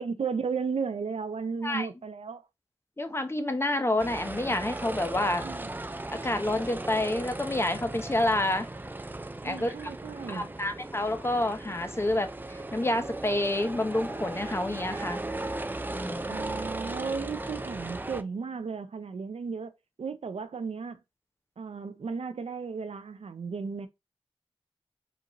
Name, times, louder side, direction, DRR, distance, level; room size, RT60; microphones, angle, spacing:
voice 1, 0.0-2.4 5.4-5.7 9.4-10.5 16.3-19.7 20.0-21.0 21.6-23.9, right 5 dB, 70° right, 0.5 m, -34 dB
voice 2, 3.0-5.5 6.1-8.7 9.4-9.7 10.3-15.2 15.9-16.3, left 1 dB, 25° left, 0.8 m, -28 dB
sound 1, 4.0-18.2, right 2 dB, 20° right, 0.4 m, -37 dB
5.0 x 2.5 x 2.9 m
cardioid pair, 40°, 11 cm